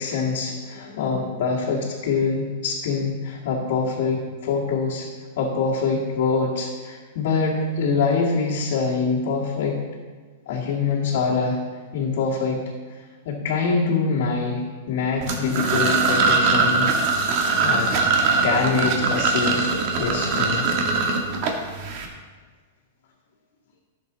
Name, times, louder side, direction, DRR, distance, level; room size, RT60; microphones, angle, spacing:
voice 1, 0.0-5.1 5.4-9.8 10.5-11.6 11.9-12.6 12.9-16.9 17.6-17.9 18.4-19.7 20.0-20.7, left 4 dB, 60° left, -5 dB, 2.0 m, -24 dB
sound 1, 15.2-22.1, right 4 dB, 45° right, 1.6 m, -21 dB
15.5 x 7.2 x 4.0 m, 1.5 s
supercardioid pair, 155°, 0 cm